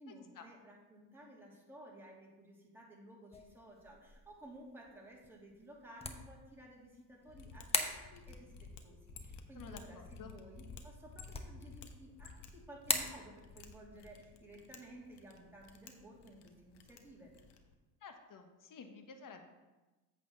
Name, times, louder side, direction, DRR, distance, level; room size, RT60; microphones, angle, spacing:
voice 1, 0.0-17.3, right 1 dB, 5° right, -4 dB, 2.9 m, -55 dB
sound 1, 3.3-17.5, left 2 dB, 15° left, 1.0 m, -45 dB
Mechanisms, 7.2-17.7, left 4 dB, 65° left, 1.1 m, -54 dB
voice 2, 9.5-10.4 18.0-19.5, left 5 dB, 45° left, 6 dB, 1.4 m, -52 dB
8.5 x 4.2 x 6.6 m, 1.1 s
supercardioid pair, 80°, 45 cm